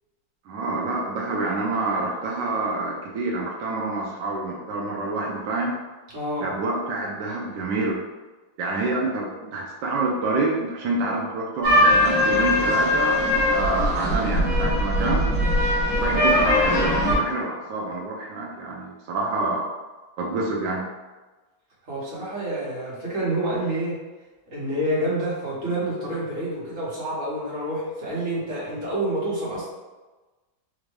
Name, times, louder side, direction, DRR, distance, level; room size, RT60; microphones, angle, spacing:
voice 1, 0.5-5.8 6.4-8.0 8.6-15.3 15.9-19.7 20.2-20.8, right 2 dB, 80° right, -2 dB, 1.2 m, -27 dB
voice 2, 6.1-6.5 21.9-24.0 24.5-29.7, right 1 dB, 50° right, -7 dB, 1.6 m, -28 dB
sound 1, 11.6-17.1, left 1 dB, 50° left, 1.8 m, -20 dB
4.3 x 2.6 x 3.2 m, 1.2 s
omnidirectional pair, 1.9 m